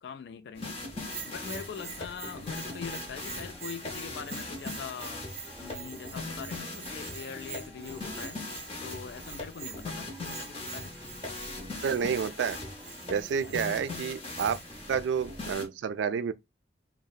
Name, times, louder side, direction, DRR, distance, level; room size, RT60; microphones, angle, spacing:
voice 1, 0.0-0.8 1.3-5.2 5.6-8.4 8.8-10.9 13.5-13.7, left 6 dB, 65° left, 0.3 m, -42 dB
sound 1, 0.5-15.7, left 2 dB, 35° left, 0.7 m, -40 dB
sound 2, 0.7-15.6, equal, 10° right, 0.4 m, -51 dB
Bell, 1.0-14.8, right 6 dB, 35° right, 0.7 m, -46 dB
voice 2, 11.8-12.6 13.1-14.6 14.9-16.3, right 7 dB, 90° right, 0.3 m, -29 dB
2.7 x 2.1 x 2.3 m
head